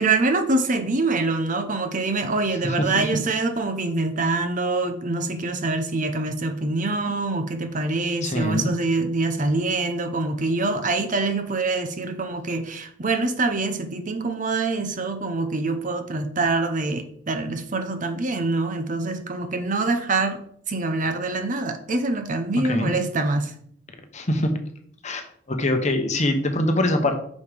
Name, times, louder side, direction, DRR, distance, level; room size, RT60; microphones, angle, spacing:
voice 1, 0.0-20.4 20.7-23.5, right 3 dB, 40° right, 0.7 m, -25 dB
voice 2, 8.2-8.7 22.6-22.9 24.1-24.5 25.0-27.1, left 1 dB, 35° left, 0.9 m, -23 dB
6.3 x 5.3 x 5.0 m
head